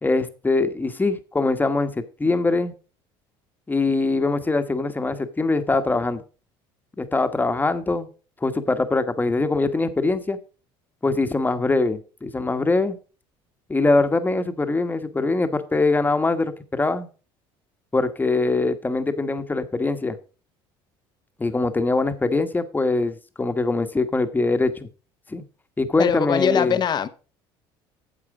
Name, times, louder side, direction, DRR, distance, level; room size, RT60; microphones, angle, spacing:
voice 1, 0.0-2.7 3.7-6.2 7.0-8.1 8.4-10.4 11.0-13.0 13.7-17.1 17.9-20.2 21.4-24.7 25.3-25.4 25.8-26.8, left 3 dB, 15° left, 1.2 m, -22 dB
voice 2, 26.0-27.1, left 8 dB, 40° left, 0.8 m, -22 dB
8.8 x 7.3 x 4.9 m
supercardioid pair, 95°, 12 cm